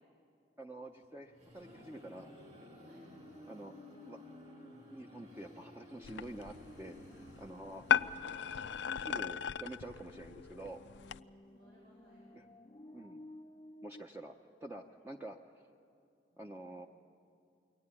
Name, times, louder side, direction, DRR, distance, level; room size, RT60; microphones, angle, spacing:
voice 1, 0.6-2.3 3.5-4.3 4.9-7.0 7.4-7.9 8.9-10.8 12.3-12.5 12.9-13.3 13.8-14.4 14.6-15.4 16.4-16.9, right 1 dB, 15° right, 2 dB, 0.6 m, -48 dB
sound 1, 1.0-8.8, left 1 dB, 40° right, 4.6 m, -54 dB
sound 2, 6.0-11.2, left 7 dB, 80° left, 0.5 m, -37 dB
voice 2, 7.1-7.9 11.3-12.4 16.3-16.8, equal, 65° right, -5 dB, 5.7 m, -67 dB
sound 3, 7.9-14.0, left 1 dB, 25° left, 0.5 m, -55 dB
23.0 x 17.5 x 9.7 m, 2.5 s
head